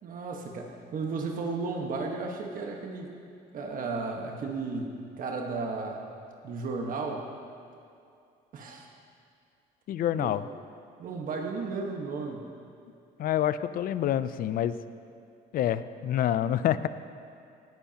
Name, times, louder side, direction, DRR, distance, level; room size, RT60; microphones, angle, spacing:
voice 1, 0.0-3.1 3.5-6.1 6.4-7.3 8.5-8.9 10.2-10.3 11.0-12.5, right 4 dB, 55° right, 1 dB, 1.4 m, -34 dB
voice 2, 9.9-10.5 13.2-14.8 15.5-16.9, left 11 dB, 60° left, 14 dB, 0.5 m, -27 dB
18.5 x 12.5 x 2.9 m, 2.5 s
cardioid pair, 110°, 17 cm